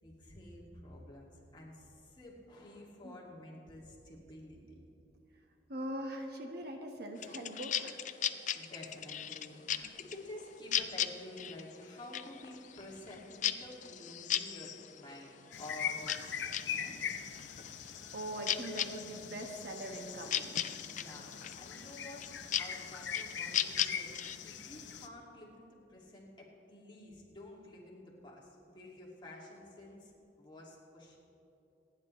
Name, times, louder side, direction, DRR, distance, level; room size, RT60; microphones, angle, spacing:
voice 1, 0.0-4.6 8.5-15.3 15.6-17.6 20.9-22.3 22.6-31.2, left 1 dB, 25° left, -3 dB, 2.3 m, -50 dB
voice 2, 5.7-8.0 18.1-20.6, right 1 dB, 60° right, 2 dB, 1.4 m, -42 dB
sound 1, 7.2-16.7 17.0-24.4, left 10 dB, 45° left, 0.5 m, -37 dB
sound 2, 15.5-25.1, left 8 dB, 80° left, 0.7 m, -42 dB
27.0 x 9.9 x 3.2 m, 2.8 s
head